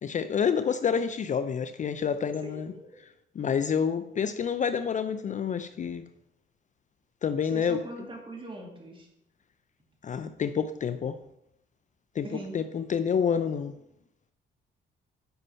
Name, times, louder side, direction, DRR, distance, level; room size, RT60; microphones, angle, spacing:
voice 1, 0.0-2.7 3.0-3.1 3.3-6.1 7.2-8.1 10.0-11.2 12.1-13.8, left 7 dB, 40° left, 11 dB, 0.4 m, -28 dB
voice 2, 2.4-3.0 7.4-9.1 12.2-12.6, right 2 dB, 25° right, 1 dB, 2.4 m, -41 dB
8.0 x 5.4 x 5.5 m, 0.82 s
cardioid pair, 90°, 20 cm